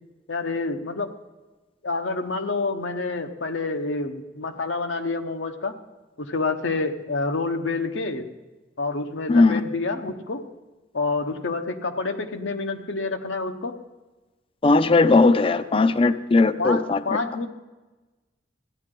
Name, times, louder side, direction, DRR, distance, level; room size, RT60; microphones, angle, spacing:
voice 1, 0.3-1.1 1.8-5.8 6.2-8.3 8.8-10.4 10.9-13.8 16.6-17.5, left 3 dB, 85° left, 6 dB, 1.0 m, -28 dB
voice 2, 9.3-9.6 14.6-17.0, left 3 dB, 30° left, 12 dB, 0.5 m, -18 dB
15.0 x 9.8 x 3.8 m, 1.2 s
head